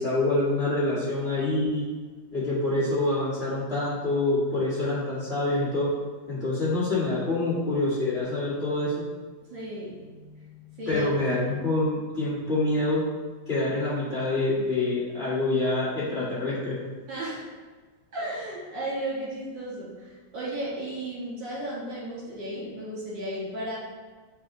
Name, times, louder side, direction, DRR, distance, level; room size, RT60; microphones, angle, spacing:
voice 1, 0.0-1.8 2.3-5.9 6.3-9.0 10.9-13.0 13.5-16.8, left 2 dB, 30° left, -9 dB, 2.1 m, -26 dB
voice 2, 9.4-11.0 17.1-17.5 18.1-23.8, right 1 dB, 60° right, -8 dB, 3.0 m, -34 dB
8.0 x 4.3 x 3.8 m, 1.4 s
omnidirectional pair, 2.4 m